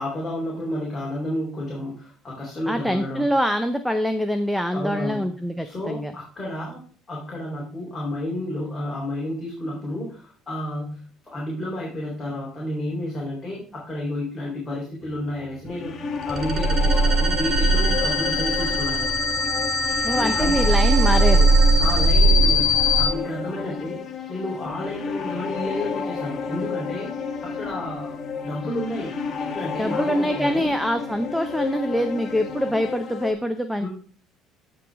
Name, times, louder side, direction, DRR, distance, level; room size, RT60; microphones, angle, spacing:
voice 1, 0.0-3.3 4.7-5.3 5.6-16.0 16.3-19.1 20.2-20.6 21.8-28.1 28.4-29.2 29.5-30.7 33.8-33.9, left 1 dB, 15° left, -4 dB, 3.4 m, -31 dB
voice 2, 2.7-6.1 20.0-21.5 29.8-33.9, equal, ahead, 7 dB, 0.7 m, -24 dB
sound 1, 15.7-33.3, left 5 dB, 35° left, 1.4 m, -31 dB
sound 2, 16.2-23.1, right 1 dB, 40° right, 2.0 m, -19 dB
14.0 x 5.1 x 3.5 m, 0.43 s
cardioid pair, 140°, 0 cm